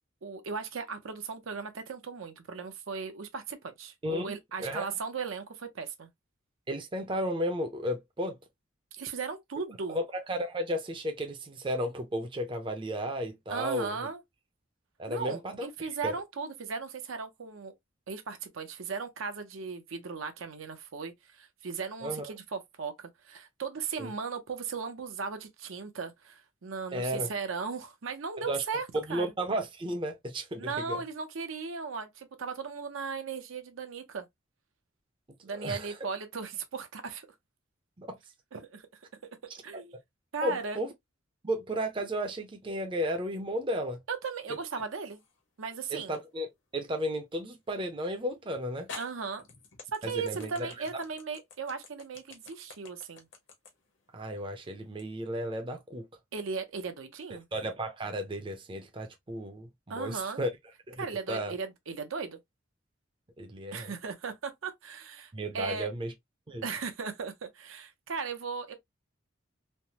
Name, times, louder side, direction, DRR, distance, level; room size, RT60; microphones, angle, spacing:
voice 1, 0.2-6.1 8.9-10.0 13.5-14.2 15.1-17.7 18.1-29.3 30.6-34.3 35.4-37.3 38.5-38.9 39.6-39.9 40.3-40.8 44.1-45.2 45.6-46.2 49.0-49.4 49.9-53.3 56.3-57.5 59.9-60.4 61.0-62.4 63.7-65.9 66.6-68.7, right 5 dB, 80° right, 0.6 m, -37 dB
voice 2, 4.0-4.3 4.6-4.9 6.7-8.4 9.9-14.0 15.0-16.1 22.0-22.3 24.0-24.1 26.9-27.3 28.5-28.6 28.9-31.0 35.6-35.9 38.0-38.2 40.4-40.9 41.4-44.0 45.9-46.5 46.7-48.9 50.0-51.0 54.1-56.1 57.5-60.5 60.9-61.5 63.4-63.9 65.3-66.1 66.5-66.6, equal, 25° right, 0.5 m, -34 dB
sound 1, 44.8-45.4 46.1-46.3 48.1-48.2 48.9-55.1, left 4 dB, 65° left, 0.9 m, -48 dB
3.2 x 2.0 x 2.8 m
head